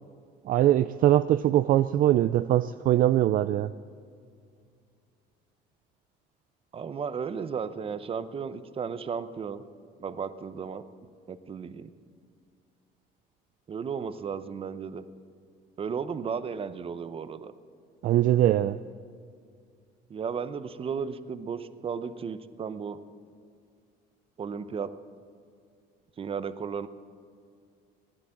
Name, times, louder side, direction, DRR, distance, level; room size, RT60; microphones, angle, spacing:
voice 1, 0.5-3.7 18.0-18.8, right 13 dB, 50° right, 13 dB, 0.4 m, -22 dB
voice 2, 6.7-9.7 10.0-10.9 11.3-11.9 13.7-15.0 15.8-17.5 20.1-23.0 24.4-24.9 26.2-26.9, right 6 dB, 30° right, 13 dB, 0.8 m, -34 dB
16.0 x 11.5 x 7.6 m, 2.2 s
cardioid pair, 115°, 18 cm